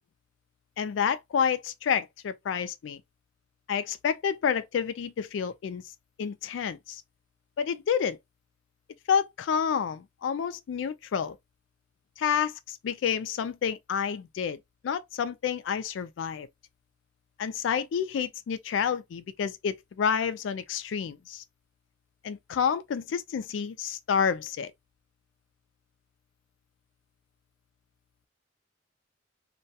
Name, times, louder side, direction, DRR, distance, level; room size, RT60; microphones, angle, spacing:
voice 1, 0.8-3.0 3.7-5.8 6.2-7.0 7.6-8.2 9.1-11.4 12.2-14.6 14.8-16.5 17.4-21.4 22.2-24.7, left 7 dB, 85° left, 0.3 m, -29 dB
2.3 x 2.1 x 2.7 m
head